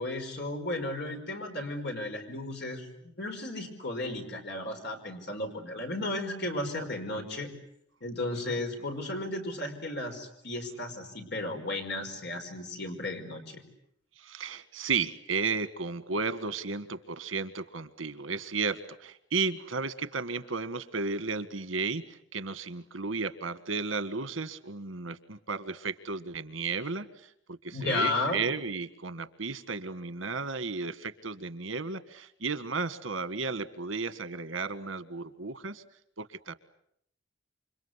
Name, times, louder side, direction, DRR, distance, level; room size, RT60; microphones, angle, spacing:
voice 1, 0.0-7.5 8.0-13.6 27.7-28.4, left 2 dB, 60° left, 4 dB, 5.2 m, -34 dB
voice 2, 14.2-35.8 36.2-36.5, right 4 dB, 85° right, 13 dB, 1.6 m, -34 dB
28.5 x 25.5 x 8.2 m, 0.71 s
head